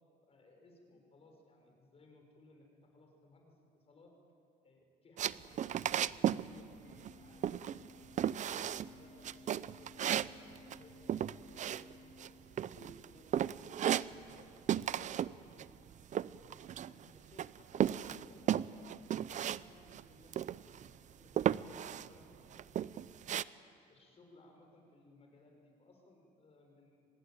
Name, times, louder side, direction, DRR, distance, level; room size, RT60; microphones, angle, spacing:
voice 1, 0.2-4.1 4.6-11.9 12.3-15.7 16.3-23.4 23.9-27.1, left 2 dB, 35° left, 2 dB, 5.9 m, -63 dB
sound 1, 5.2-6.5 6.7-7.2 7.4-7.9 8.2-8.9 9.2-12.3 12.6-13.0 13.3-14.4 14.7-15.3 15.6-17.0 17.4-19.6 19.9-20.0 20.3-20.9 21.4-22.1 22.5-23.4, right 10 dB, 45° right, 0.5 m, -34 dB
Organ, 6.8-12.9, left 4 dB, 75° left, 3.6 m, -58 dB
25.5 x 20.0 x 9.2 m, 2.5 s
cardioid pair, 110°, 17 cm